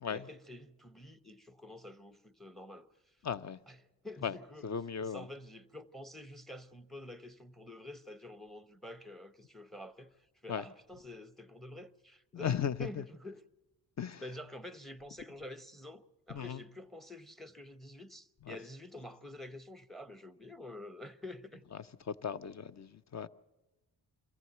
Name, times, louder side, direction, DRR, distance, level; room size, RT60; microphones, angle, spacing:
voice 1, 0.1-3.2 3.7-4.7 5.0-13.4 14.1-21.6, left 1 dB, ahead, 0.8 m, -48 dB
voice 2, 3.2-3.6 4.2-4.3 4.6-5.2 10.5-10.6 12.3-13.0 14.0-14.2 16.3-16.6 18.5-18.6 22.1-23.3, left 7 dB, 35° left, 0.6 m, -36 dB
23.5 x 14.5 x 7.9 m
supercardioid pair, 65°, 47 cm